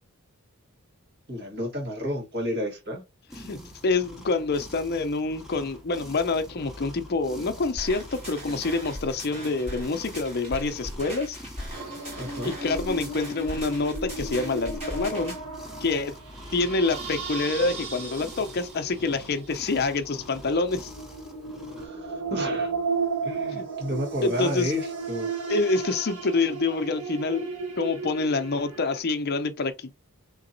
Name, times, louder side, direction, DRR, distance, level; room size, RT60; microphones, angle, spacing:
voice 1, 1.3-3.0 12.2-12.5 21.8-22.7 23.2-25.3, left 1 dB, 50° right, 1.5 m, -31 dB
sound 1, 3.3-21.9, equal, ahead, 0.8 m, -45 dB
voice 2, 3.4-11.4 12.4-15.3 15.8-16.1 16.5-20.9 23.5-23.7 24.2-24.7 25.5-27.5 27.8-29.9, left 3 dB, 45° left, 0.5 m, -27 dB
sound 2, 7.8-15.4, equal, 25° right, 1.9 m, -39 dB
sound 3, 11.7-29.0, right 4 dB, 80° right, 1.3 m, -35 dB
3.9 x 2.9 x 2.7 m
head